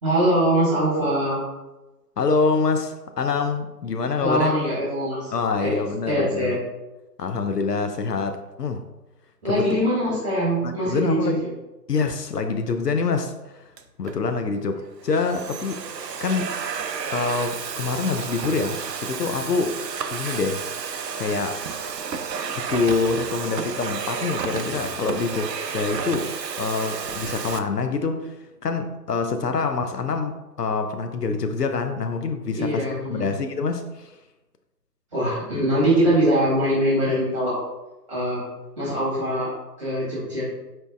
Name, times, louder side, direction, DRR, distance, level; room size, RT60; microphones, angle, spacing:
voice 1, 0.0-1.4 4.2-5.3 5.6-5.8 6.0-6.6 9.4-11.5 32.5-33.3 35.1-37.6 38.1-38.4 38.8-39.5 39.8-40.4, right 1 dB, 20° right, -8 dB, 1.5 m, -22 dB
voice 2, 2.2-4.5 5.3-6.6 7.2-8.8 9.4-9.7 10.6-11.4 11.9-13.7 14.0-15.8 16.2-16.5 17.1-19.8 20.1-20.6 21.2-21.6 22.7-26.3 26.6-28.4 28.6-32.8 33.1-34.1, left 4 dB, 70° left, 6 dB, 0.6 m, -25 dB
Domestic sounds home sounds, 13.8-14.2 14.9-27.6, right 6 dB, 80° right, 0.6 m, -31 dB
4.3 x 4.0 x 2.4 m, 1.0 s
figure-of-eight pair, 145°, 49 cm